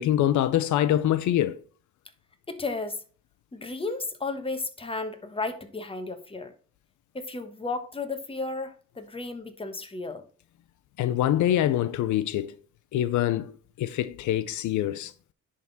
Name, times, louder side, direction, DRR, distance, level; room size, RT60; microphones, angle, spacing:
voice 1, 0.0-1.6 11.0-12.5 12.9-15.1, left 12 dB, 75° left, 0.5 m, -25 dB
voice 2, 2.5-3.0 3.5-6.5 7.1-10.2, left 3 dB, 20° left, 1.2 m, -33 dB
10.5 x 3.7 x 4.1 m
cardioid pair, 90°, 30 cm